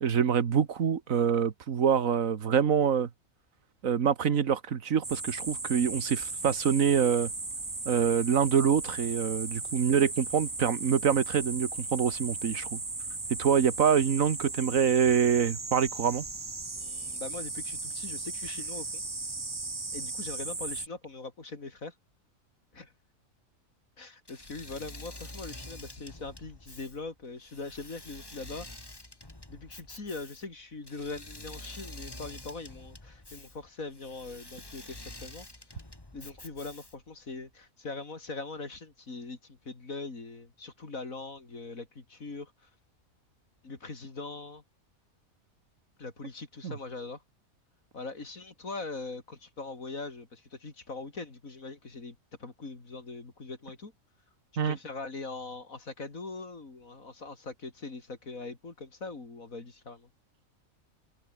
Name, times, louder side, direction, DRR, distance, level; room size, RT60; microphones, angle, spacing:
voice 1, 0.0-3.1 3.8-7.3 7.9-12.8 13.4-16.3 46.6-46.7 54.6-54.8, right 7 dB, 70° right, 1.8 m, -25 dB
sound 1, 5.0-20.9, right 3 dB, 20° right, 0.7 m, -37 dB
voice 2, 16.8-19.0 19.9-21.9 22.7-22.9 24.0-28.7 29.5-35.5 36.1-42.7 43.6-44.6 46.0-47.2 47.9-53.9 54.5-60.1, left 3 dB, 75° left, 3.9 m, -41 dB
Engine / Mechanisms, 24.3-37.1, left 2 dB, 15° left, 2.1 m, -47 dB
omnidirectional pair, 1.4 m